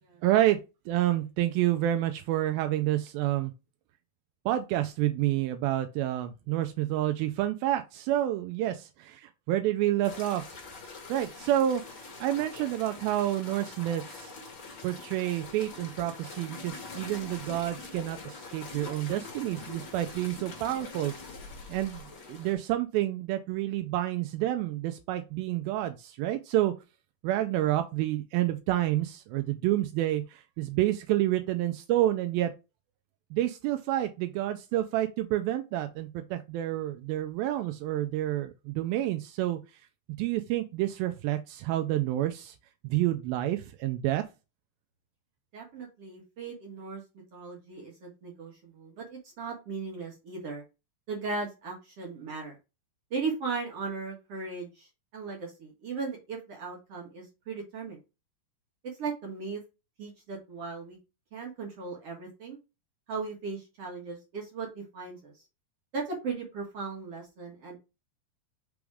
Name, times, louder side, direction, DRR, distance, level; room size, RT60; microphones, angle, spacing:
voice 1, 0.2-0.6 0.9-3.5 4.5-10.4 11.1-14.3 14.8-21.1 21.7-26.7 27.2-32.5 33.3-39.6 40.2-42.6 42.8-44.2, right 13 dB, 85° right, 2.1 m, -29 dB
sound 1, 10.0-22.6, left 4 dB, 40° left, 2.2 m, -44 dB
voice 2, 45.5-47.0 47.3-50.6 51.1-52.6 53.1-54.9 55.1-58.0 59.0-59.6 60.0-61.0 61.3-62.6 63.1-65.4 65.9-67.8, right 4 dB, 55° right, 1.8 m, -37 dB
6.1 x 3.5 x 4.8 m
omnidirectional pair, 4.8 m